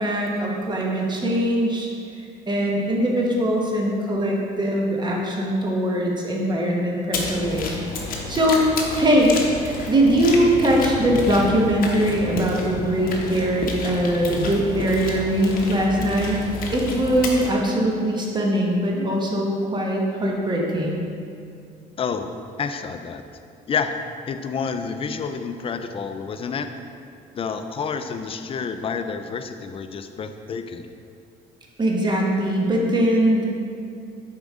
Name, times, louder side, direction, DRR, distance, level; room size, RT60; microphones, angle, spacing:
voice 1, 0.0-1.9 2.5-8.7 8.9-9.3 9.6-16.4 16.7-21.0 31.8-33.5, right 1 dB, 25° right, -1 dB, 1.1 m, -21 dB
sound 1, 7.1-17.5, left 3 dB, 55° left, 1.0 m, -30 dB
voice 2, 22.0-22.3 22.6-23.2 23.7-26.7 27.3-30.9, left 5 dB, 35° left, 8 dB, 0.4 m, -29 dB
7.2 x 5.1 x 3.7 m, 2.4 s
cardioid pair, 110°, 17 cm